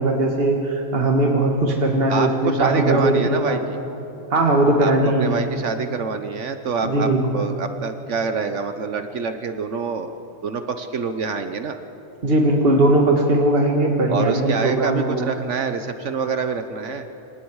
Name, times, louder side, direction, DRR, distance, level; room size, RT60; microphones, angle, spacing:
voice 1, 0.0-3.7 4.3-5.4 6.8-7.4 12.2-15.3, right 1 dB, 50° right, 1 dB, 2.1 m, -19 dB
voice 2, 2.1-3.8 4.8-10.1 10.4-11.8 14.1-17.1, right 5 dB, 75° right, 8 dB, 1.3 m, -26 dB
28.0 x 27.0 x 4.8 m, 2.9 s
omnidirectional pair, 1.3 m